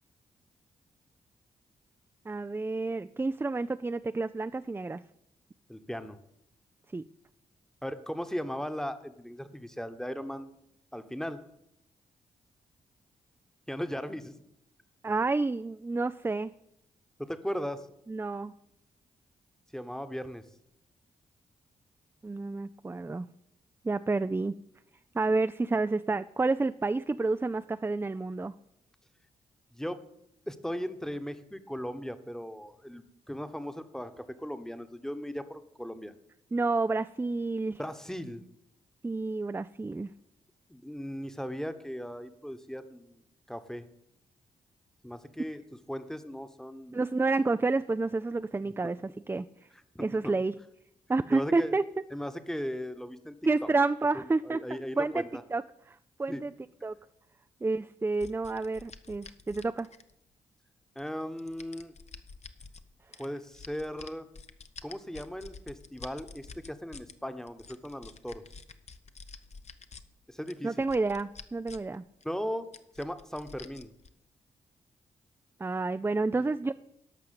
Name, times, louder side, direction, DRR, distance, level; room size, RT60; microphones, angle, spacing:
voice 1, 2.3-5.0 6.9-7.0 15.0-16.5 18.1-18.5 22.2-23.3 23.8-24.6 25.1-28.5 36.5-37.8 39.0-40.1 46.9-49.0 49.3-49.5 50.0-50.5 51.1-51.8 53.5-55.2 55.5-55.6 55.9-56.5 56.8-56.9 57.6-59.9 70.6-72.0 75.6-76.7, right 3 dB, 15° right, 11 dB, 0.4 m, -29 dB
voice 2, 5.7-6.2 7.8-10.5 10.9-11.4 13.7-14.3 17.2-17.9 19.7-20.4 29.7-30.0 30.5-36.1 37.8-38.4 40.7-43.2 43.5-43.9 45.0-45.6 45.9-47.0 48.6-48.7 49.9-50.3 51.3-51.8 52.1-53.4 53.6-53.7 54.4-55.4 56.3-56.4 60.9-61.9 63.2-64.3 64.8-68.4 70.3-70.9 72.2-72.7 72.9-73.9 76.4-76.5, equal, 5° left, 9 dB, 1.2 m, -37 dB
sound 1, 58.2-60.3 61.0-62.8 63.1-67.1 67.5-70.0 70.5-71.9 72.2-72.3 72.7-74.1, left 4 dB, 45° left, 0.9 m, -48 dB
11.5 x 5.7 x 7.7 m, 0.79 s
supercardioid pair, 45°, 16 cm